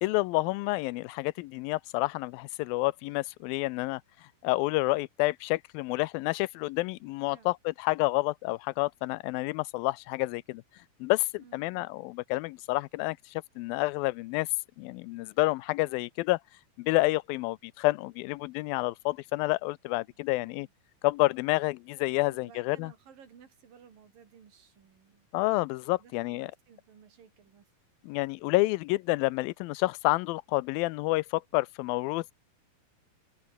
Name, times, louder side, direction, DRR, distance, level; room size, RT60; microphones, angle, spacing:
voice 1, 0.0-4.0 4.4-10.6 11.0-14.5 14.8-16.4 16.8-20.7 21.0-22.9 25.3-26.5 28.0-32.3, left 21 dB, 90° left, 2.4 m, -29 dB
voice 2, 11.4-11.9 20.0-20.7 22.2-25.3 26.0-27.7, right 7 dB, 75° right, 4.8 m, -57 dB
omnidirectional pair, 4.1 m